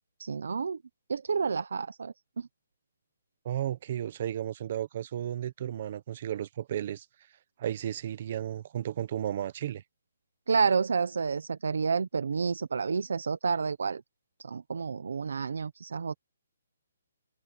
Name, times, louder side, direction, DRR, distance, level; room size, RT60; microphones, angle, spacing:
voice 1, 0.2-0.8 1.1-2.5 10.5-14.0 14.4-16.1, right 5 dB, 70° right, 1.0 m, -29 dB
voice 2, 3.4-7.0 7.6-9.8, right 10 dB, 30° right, 0.9 m, -33 dB
hypercardioid pair, 175°, 0 cm